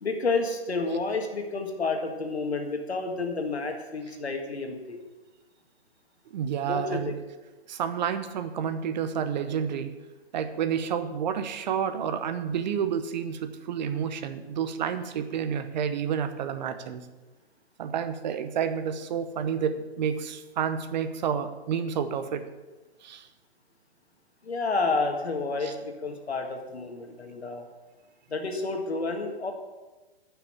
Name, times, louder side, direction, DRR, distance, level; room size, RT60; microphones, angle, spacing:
voice 1, 0.0-5.0 6.7-7.1 24.4-27.6 28.3-29.5, left 3 dB, 90° left, 3 dB, 1.7 m, -30 dB
voice 2, 6.3-7.1 7.7-9.9 10.3-17.1 17.8-22.5 23.0-23.3 25.6-25.7, right 7 dB, 45° right, 10 dB, 0.9 m, -30 dB
10.0 x 5.8 x 7.2 m, 1.2 s
hypercardioid pair, 140°, 31 cm